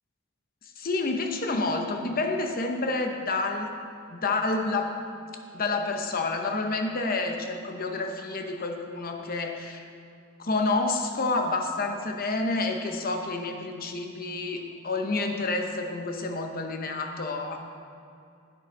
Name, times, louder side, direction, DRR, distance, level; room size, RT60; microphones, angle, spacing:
voice 1, 0.8-3.7 4.1-5.0 5.5-9.8 10.4-17.6, left 3 dB, 45° left, 4 dB, 0.9 m, -29 dB
9.6 x 7.8 x 5.2 m, 2.5 s
head